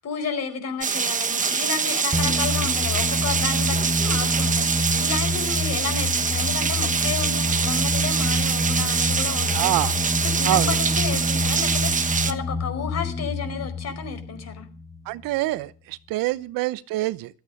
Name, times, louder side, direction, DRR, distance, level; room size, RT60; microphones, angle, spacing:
voice 1, 0.0-9.9 10.2-14.7, left 5 dB, 45° left, 4.9 m, -32 dB
Rain, 0.8-12.3, right 6 dB, 20° right, 1.2 m, -24 dB
sound 1, 2.1-15.3, left 2 dB, ahead, 3.3 m, -27 dB
voice 2, 9.4-10.0 10.4-10.7 15.1-17.4, right 19 dB, 65° right, 0.9 m, -26 dB
15.5 x 14.0 x 6.5 m
cardioid pair, 130°, 36 cm